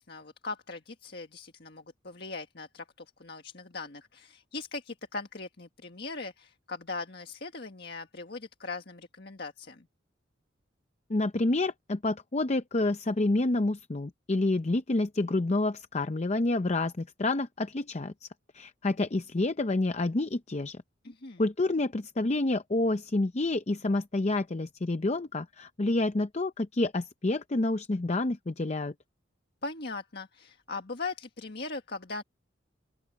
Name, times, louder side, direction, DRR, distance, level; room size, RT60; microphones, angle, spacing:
voice 1, 0.0-9.9 21.0-21.4 29.6-32.2, left 3 dB, 55° left, 1.6 m, -40 dB
voice 2, 11.1-18.3 18.5-20.8 21.4-28.9, left 2 dB, 35° left, 0.6 m, -28 dB
open air
head